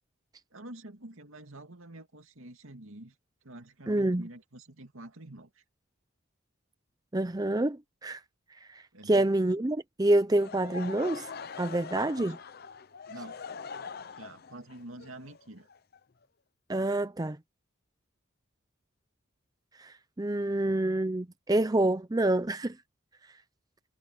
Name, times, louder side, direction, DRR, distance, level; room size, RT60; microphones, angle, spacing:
voice 1, 0.5-3.1 3.4-5.6 8.9-9.3 12.2-12.3 13.1-13.4 14.2-15.7 20.4-20.9, right 1 dB, 75° right, 2.5 m, -47 dB
voice 2, 3.9-4.3 7.1-8.2 8.6-11.3 11.6-12.3 16.7-17.4 19.8-22.8, right 1 dB, 20° right, 0.5 m, -27 dB
Laughter / Crowd, 10.3-16.2, left 5 dB, 45° left, 0.6 m, -43 dB
head